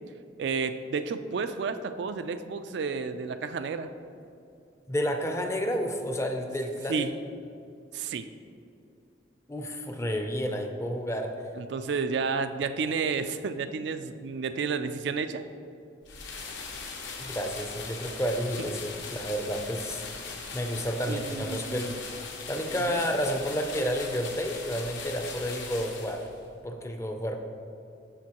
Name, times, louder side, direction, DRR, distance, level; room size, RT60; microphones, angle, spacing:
voice 1, 0.4-3.9 6.9-7.1 7.9-8.3 11.6-15.4 21.1-22.0 22.9-23.0, right 5 dB, 60° right, 9 dB, 0.3 m, -31 dB
voice 2, 4.9-7.1 9.5-11.3 17.2-21.9 22.5-26.2 26.6-27.4, equal, 15° left, 4 dB, 0.5 m, -31 dB
sound 1, 16.0-26.5, left 4 dB, 70° left, 0.9 m, -40 dB
12.5 x 4.5 x 2.9 m, 2.5 s
head